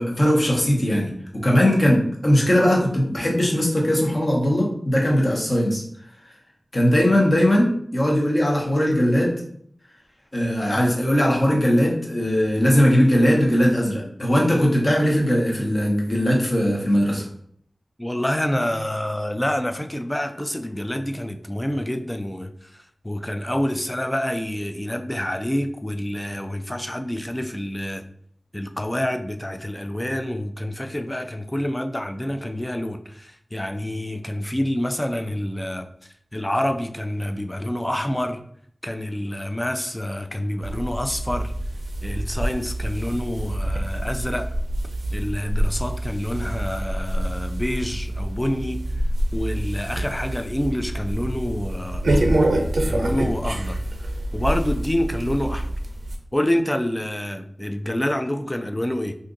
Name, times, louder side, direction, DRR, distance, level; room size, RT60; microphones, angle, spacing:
voice 1, 0.0-5.8 6.7-9.3 10.3-17.3 49.9-50.0, equal, 40° left, -2 dB, 1.0 m, -19 dB
voice 2, 18.0-28.0 28.5-38.4 38.8-41.5 42.0-44.5 45.1-48.8 49.3-52.0 52.4-52.5 52.9-53.8 54.3-55.7 56.3-59.2, left 1 dB, 15° left, 7 dB, 0.3 m, -27 dB
sound 1, 40.6-56.2, right 1 dB, 85° right, 0.5 m, -26 dB
2.6 x 2.5 x 3.7 m, 0.64 s
wide cardioid pair, 55°, 0 cm